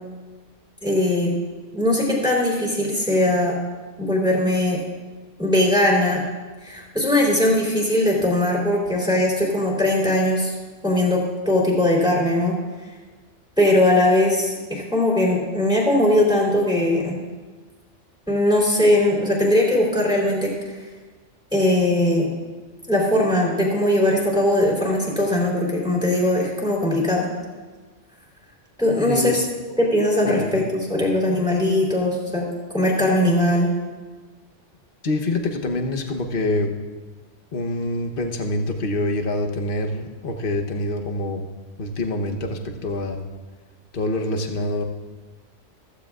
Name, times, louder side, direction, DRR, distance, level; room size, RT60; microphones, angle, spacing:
voice 1, 0.8-1.3 1.7-3.6 4.0-4.8 5.4-6.2 6.6-10.5 10.8-12.5 13.6-17.2 18.3-20.5 21.5-22.3 22.9-27.3 28.8-29.4 29.8-32.5 32.7-33.7, left 1 dB, 5° right, -4 dB, 3.5 m, -20 dB
voice 2, 29.1-29.5 30.2-30.6 35.0-36.7 37.5-41.5 41.8-43.3 43.9-44.8, left 2 dB, 50° left, 4 dB, 1.1 m, -26 dB
15.0 x 15.0 x 2.4 m, 1.3 s
omnidirectional pair, 1.2 m